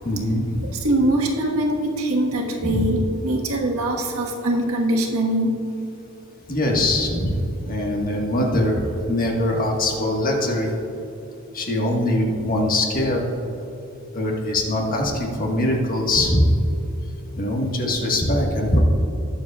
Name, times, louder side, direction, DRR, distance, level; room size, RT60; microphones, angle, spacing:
voice 1, 0.0-0.7 2.6-2.9 6.5-10.7 11.5-13.3 14.1-16.5 17.4-18.8, left 1 dB, 40° left, -1 dB, 1.6 m, -22 dB
voice 2, 0.6-5.6, right 1 dB, 75° right, 0 dB, 1.5 m, -23 dB
20.0 x 7.1 x 2.4 m, 2.9 s
head